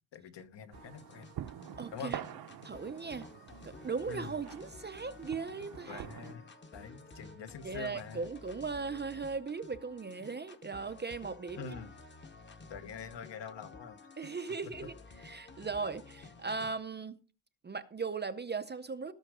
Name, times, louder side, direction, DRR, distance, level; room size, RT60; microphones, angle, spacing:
voice 1, 0.1-1.3 1.9-2.1 4.1-4.3 5.9-8.2 11.6-11.9 12.7-14.0, left 6 dB, 60° left, 1.5 m, -45 dB
sound 1, 0.7-16.7, left 3 dB, 25° left, 1.1 m, -53 dB
sound 2, 0.7-6.3, right 10 dB, 50° right, 0.8 m, -46 dB
voice 2, 1.8-2.2 2.6-3.3 3.6-6.1 7.6-11.8 14.2-17.2 17.6-19.1, right 4 dB, 20° right, 0.6 m, -38 dB
18.5 x 6.4 x 5.0 m
wide cardioid pair, 175°, 48 cm